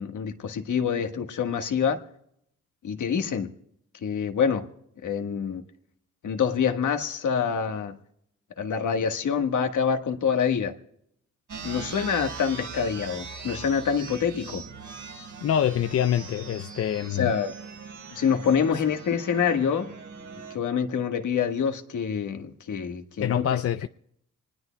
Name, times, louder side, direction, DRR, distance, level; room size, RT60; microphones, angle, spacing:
voice 1, 0.0-2.0 2.8-3.5 4.0-4.7 5.0-5.6 6.2-8.0 8.6-10.7 11.6-14.6 17.0-17.6 18.1-19.9 20.5-23.6, left 7 dB, 65° left, 1.5 m, -26 dB
sound 1, 11.5-20.6, right 5 dB, 65° right, 4.8 m, -41 dB
voice 2, 15.4-17.3 23.2-23.9, left 10 dB, 50° left, 0.5 m, -25 dB
26.0 x 20.0 x 2.2 m
supercardioid pair, 50°, 32 cm